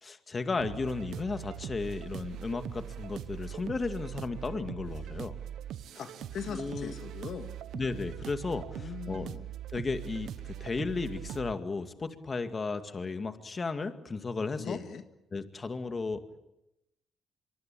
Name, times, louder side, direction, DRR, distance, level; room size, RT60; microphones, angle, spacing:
voice 1, 0.0-5.4 6.5-6.9 7.7-9.3 9.7-14.8 15.3-16.2, left 4 dB, 30° left, 8 dB, 2.2 m, -34 dB
sound 1, 0.6-11.6, right 11 dB, 75° right, 0.9 m, -41 dB
voice 2, 5.9-7.5 8.8-9.5 14.6-15.0, left 7 dB, 65° left, 7 dB, 1.9 m, -40 dB
24.0 x 24.0 x 8.8 m, 0.89 s
cardioid pair, 90°, 0 cm